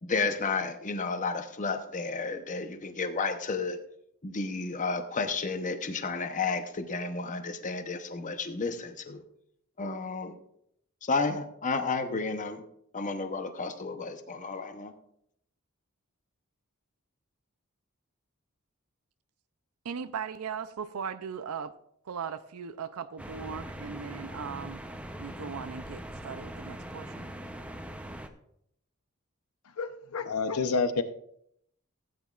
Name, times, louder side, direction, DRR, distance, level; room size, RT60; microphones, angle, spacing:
voice 1, 0.0-3.8 4.2-9.2 9.8-10.3 11.0-12.6 12.9-14.9, left 4 dB, 35° left, 0.8 m, -32 dB
voice 2, 19.9-21.7 22.1-24.8 25.2-27.3, right 6 dB, 90° right, 0.5 m, -38 dB
sound 1, 23.2-28.3, right 1 dB, 5° right, 0.6 m, -41 dB
voice 3, 29.8-31.0, left 4 dB, 90° left, 0.7 m, -28 dB
16.0 x 9.2 x 2.4 m
head